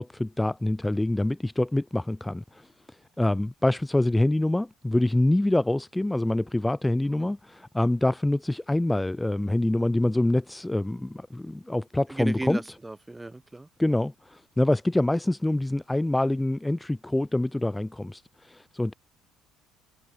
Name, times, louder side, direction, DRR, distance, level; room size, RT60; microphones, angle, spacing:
voice 1, 0.0-12.6 13.8-18.9, left 1 dB, 5° left, 2.6 m, -26 dB
voice 2, 12.1-13.7, right 2 dB, 10° right, 7.2 m, -35 dB
cardioid pair, 115°, 0 cm